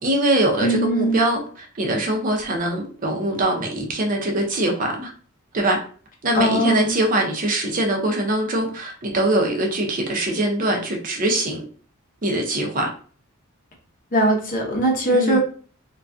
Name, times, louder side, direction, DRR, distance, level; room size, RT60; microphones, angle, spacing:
voice 1, 0.0-5.1 5.5-5.8 6.2-11.6 12.2-12.9 15.1-15.4, right 1 dB, 40° right, 2 dB, 0.5 m, -22 dB
voice 2, 0.6-1.3 6.3-6.9 14.1-15.4, right 1 dB, 40° left, -1 dB, 0.6 m, -20 dB
2.3 x 2.2 x 2.5 m, 0.43 s
head